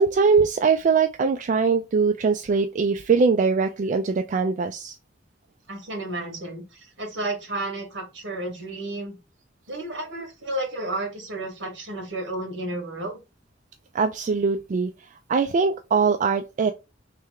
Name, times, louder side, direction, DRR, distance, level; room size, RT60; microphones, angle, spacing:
voice 1, 0.0-5.0 13.9-14.9 15.3-16.7, right 5 dB, 40° right, 0.3 m, -22 dB
voice 2, 5.7-9.2 9.7-13.2, right 2 dB, 70° right, 1.8 m, -32 dB
3.4 x 3.2 x 3.5 m
head